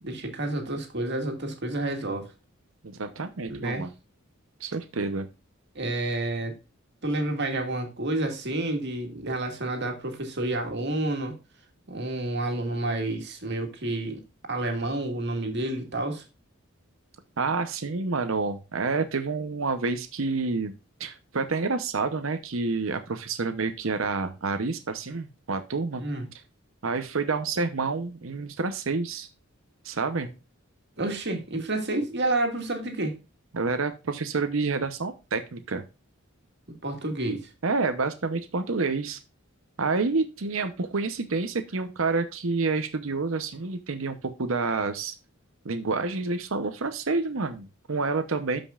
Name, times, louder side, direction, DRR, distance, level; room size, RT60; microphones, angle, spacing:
voice 1, 0.0-2.3 3.5-3.9 5.8-6.5 7.0-11.4 11.9-14.2 14.5-16.2 26.0-26.3 31.0-33.2 36.8-37.5, right 2 dB, 55° right, 4 dB, 2.0 m, -29 dB
voice 2, 2.8-3.9 4.6-5.3 17.4-20.7 21.0-26.0 26.8-29.3 29.8-30.3 33.5-35.8 37.6-39.2 39.8-45.2 45.6-48.6, right 4 dB, 75° right, 9 dB, 0.8 m, -28 dB
12.5 x 5.3 x 2.4 m, 0.29 s
head